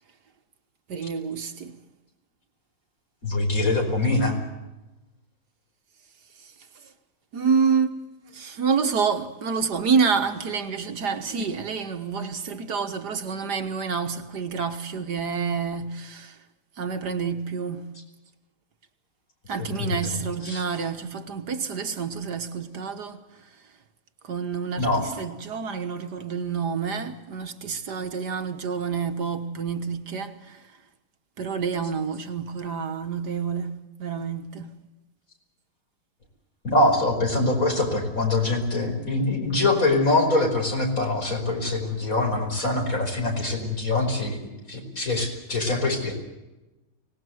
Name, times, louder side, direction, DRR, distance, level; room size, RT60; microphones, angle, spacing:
voice 1, 0.9-1.8 6.4-6.9 7.3-7.9 8.3-16.4 16.8-17.9 19.5-23.6 24.2-30.8 31.4-34.7, right 6 dB, 65° right, 1.9 m, -28 dB
voice 2, 3.2-4.4 11.3-11.4 19.8-19.9 20.5-20.6 24.8-25.0 36.6-44.4 44.7-46.1, left 2 dB, 45° left, 5.4 m, -24 dB
24.5 x 19.5 x 7.9 m
omnidirectional pair, 2.0 m